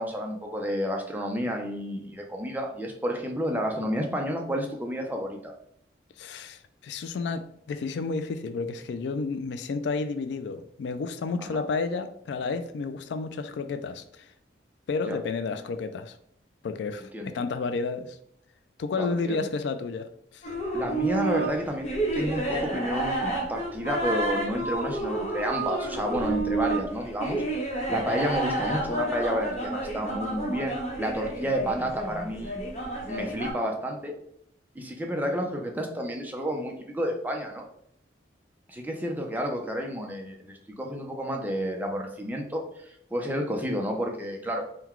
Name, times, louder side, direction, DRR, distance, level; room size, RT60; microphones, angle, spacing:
voice 1, 0.0-5.5 11.5-11.6 15.1-15.2 17.1-17.4 19.0-19.5 20.7-27.4 27.9-32.5 33.1-34.1 34.7-37.7 38.7-44.7, equal, 10° right, 1 dB, 0.5 m, -30 dB
voice 2, 6.2-14.3 14.9-16.2 16.6-18.2 18.8-20.1 20.3-20.5, left 4 dB, 70° left, 10 dB, 0.3 m, -31 dB
sound 1, 20.4-33.5, right 2 dB, 35° left, 0.9 m, -30 dB
3.8 x 2.2 x 4.4 m, 0.72 s
head